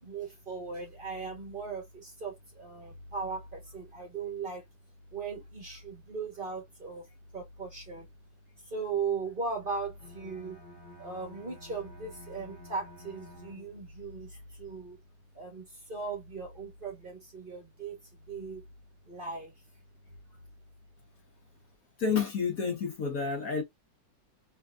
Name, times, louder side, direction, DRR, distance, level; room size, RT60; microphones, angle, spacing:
voice 1, 0.0-4.6 5.1-7.0 7.3-8.1 8.7-10.6 11.0-15.0 15.3-18.0 18.3-18.6 19.1-19.5, right 4 dB, 30° right, 1.2 m, -38 dB
Bowed string instrument, 9.9-14.0, left 1 dB, 35° left, 2.4 m, -51 dB
voice 2, 22.0-23.6, left 5 dB, 55° left, 1.1 m, -29 dB
3.8 x 3.3 x 2.2 m
omnidirectional pair, 2.0 m